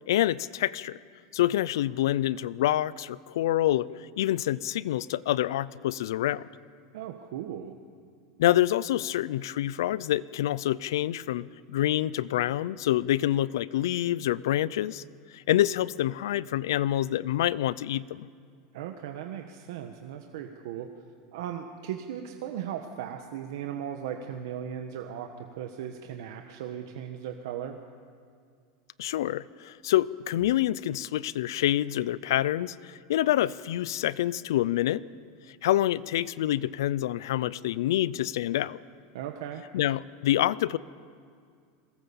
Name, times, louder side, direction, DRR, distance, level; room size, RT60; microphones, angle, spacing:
voice 1, 0.1-1.0 1.3-6.5 8.4-15.0 15.3-18.3 29.0-35.0 35.6-38.8 39.7-40.8, left 13 dB, 85° left, 20 dB, 0.5 m, -27 dB
voice 2, 6.9-7.8 18.7-20.9 21.3-27.8 39.1-39.6, right 9 dB, 65° right, 5 dB, 1.3 m, -37 dB
22.0 x 18.0 x 7.2 m, 2.2 s
supercardioid pair, 170°, 2 cm